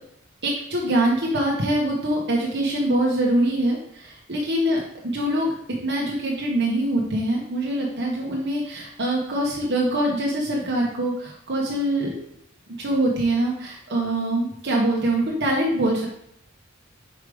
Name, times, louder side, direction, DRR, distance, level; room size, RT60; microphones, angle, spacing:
voice 1, 0.4-4.8 5.1-5.5 5.8-12.1 12.8-16.1, right 1 dB, 55° right, -2 dB, 1.2 m, -24 dB
5.5 x 4.8 x 5.0 m, 0.73 s
head